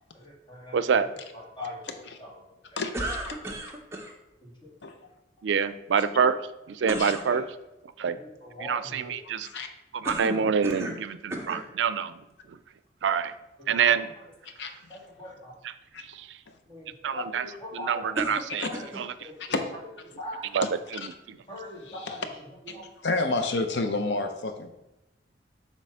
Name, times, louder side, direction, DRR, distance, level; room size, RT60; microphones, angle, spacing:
voice 1, 0.1-1.0 1.3-1.8 2.2-2.8 4.4-4.7 7.2-7.4 8.1-9.2 10.2-10.5 11.3-11.5 13.6-14.0 14.9-15.5 16.7-18.1 18.6-18.9 19.2-20.4 21.5-22.4 22.7-22.8, left 1 dB, 25° left, -4 dB, 1.8 m, -42 dB
voice 2, 0.7-1.1 5.4-6.4 6.7-7.4 8.0-8.2 8.6-9.5 9.9-12.1 13.0-13.3 13.7-14.1 16.1-16.3 17.0-17.4 17.7-18.7 19.0-19.1 20.5-20.6 20.9-21.0, right 6 dB, 85° right, 13 dB, 0.4 m, -26 dB
voice 3, 2.8-3.4 4.8-4.9 7.0-7.1 9.4-9.7 14.6-14.7 15.9-16.0 18.6-18.7 19.5-19.6 20.6-20.7 21.9-22.2 22.7-22.8 23.0-24.7, left 3 dB, 80° left, 7 dB, 0.7 m, -29 dB
sound 1, 2.9-4.1 6.8-7.3 10.0-11.0 11.3-11.7 12.5-12.6 18.2-19.1, right 1 dB, 15° right, 0.7 m, -34 dB
7.5 x 3.0 x 5.5 m, 0.94 s
head